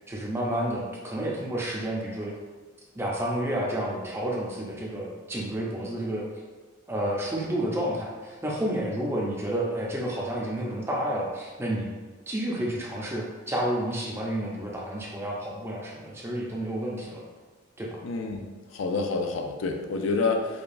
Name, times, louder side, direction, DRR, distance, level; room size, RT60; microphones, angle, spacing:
voice 1, 0.1-2.3 2.9-6.3 6.9-11.9 12.3-17.2 17.8-18.0, right 1 dB, 10° right, -3 dB, 0.5 m, -30 dB
voice 2, 18.0-18.5 18.7-20.5, left 4 dB, 70° left, 3 dB, 0.4 m, -27 dB
4.9 x 2.3 x 2.5 m, 1.3 s
head